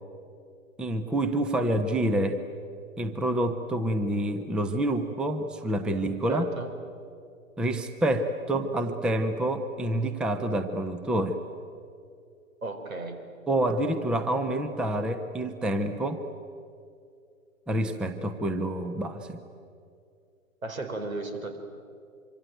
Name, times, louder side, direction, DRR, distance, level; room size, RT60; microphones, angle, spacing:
voice 1, 0.8-2.4 3.0-6.5 7.6-11.4 13.5-16.2 17.7-19.4, right 1 dB, ahead, 9 dB, 0.6 m, -27 dB
voice 2, 6.3-6.7 12.6-13.2 20.6-21.6, right 3 dB, 80° right, 7 dB, 4.4 m, -34 dB
26.0 x 24.5 x 9.1 m, 2.4 s
figure-of-eight pair, 120°, 41 cm